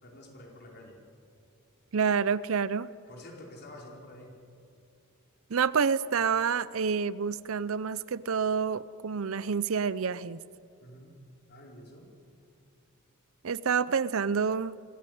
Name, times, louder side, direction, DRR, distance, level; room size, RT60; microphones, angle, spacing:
voice 1, 0.0-1.0 3.1-4.4 10.8-11.2 11.5-12.1, left 1 dB, 50° left, 0 dB, 4.5 m, -48 dB
voice 2, 1.9-2.9 5.5-10.4 13.4-14.8, right 6 dB, 70° right, 18 dB, 0.6 m, -28 dB
25.0 x 15.0 x 9.4 m, 2.4 s
head